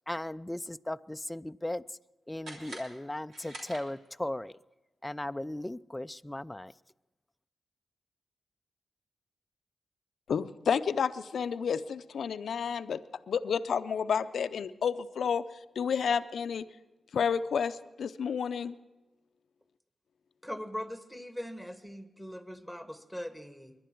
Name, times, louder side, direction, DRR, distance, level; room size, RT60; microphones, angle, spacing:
voice 1, 0.1-1.8 2.3-4.5 5.0-6.7, left 1 dB, 15° left, 0.4 m, -37 dB
sound 1, 2.4-4.3, right 1 dB, 80° right, 3.2 m, -47 dB
voice 2, 10.3-13.0 13.3-15.4 15.8-16.6 17.1-18.7, left 7 dB, 75° left, 0.5 m, -30 dB
voice 3, 20.4-23.7, equal, 5° right, 1.6 m, -41 dB
21.0 x 11.5 x 4.5 m
cardioid pair, 50°, 0 cm